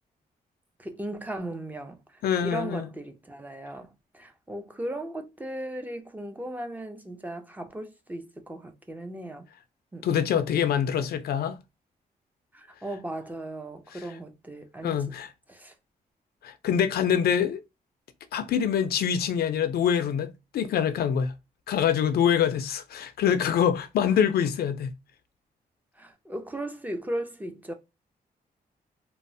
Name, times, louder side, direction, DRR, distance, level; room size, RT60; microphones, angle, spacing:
voice 1, 0.8-9.5 9.9-10.5 12.5-15.2 15.5-15.7 26.0-27.7, right 1 dB, 10° right, 0.4 m, -37 dB
voice 2, 2.2-2.9 10.0-11.6 14.8-15.3 16.4-17.6 18.3-21.3 21.7-24.9, left 8 dB, 80° left, 0.4 m, -25 dB
2.9 x 2.0 x 2.6 m
wide cardioid pair, 150°, 16 cm